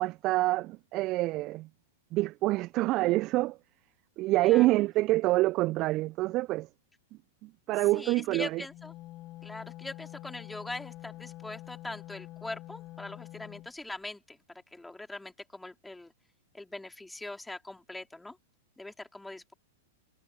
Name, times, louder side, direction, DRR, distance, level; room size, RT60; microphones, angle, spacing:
voice 1, 0.0-1.7 2.1-3.6 4.2-6.7 7.4-8.6, right 19 dB, 35° right, 0.8 m, -26 dB
voice 2, 7.9-8.9 9.4-16.1 16.5-18.4 18.8-19.5, left 2 dB, 5° left, 4.3 m, -42 dB
Wind instrument woodwind instrument, 8.5-13.7, left 16 dB, 35° left, 5.7 m, -46 dB
figure-of-eight pair, 100°, 0 cm